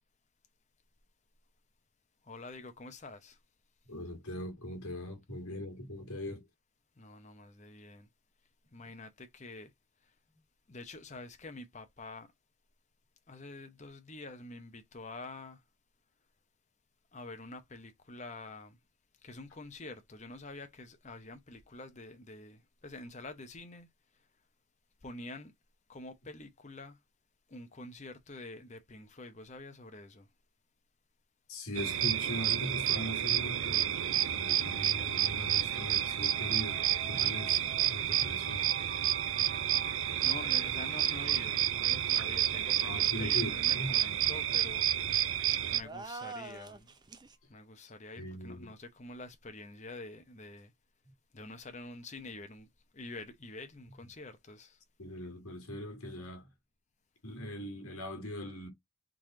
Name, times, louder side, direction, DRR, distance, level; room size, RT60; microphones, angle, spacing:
voice 1, 2.2-3.4 7.0-8.1 8.7-9.7 10.7-12.3 13.3-15.6 17.1-18.8 19.2-23.9 25.0-25.5 25.9-27.0 27.5-30.3 40.2-45.2 45.7-46.9 47.5-50.7 51.3-52.7 52.9-54.8, left 2 dB, 30° left, 0.7 m, -47 dB
voice 2, 3.9-6.4 31.5-37.6 37.9-38.6 42.8-43.9 48.2-48.7 55.0-56.5 57.2-58.7, equal, 85° left, 1.7 m, -40 dB
sound 1, 31.7-45.8, right 11 dB, 70° right, 0.5 m, -30 dB
sound 2, 31.8-46.7, right 6 dB, 45° right, 1.3 m, -54 dB
sound 3, 45.8-47.3, right 3 dB, 20° right, 0.4 m, -44 dB
3.8 x 3.1 x 3.7 m
head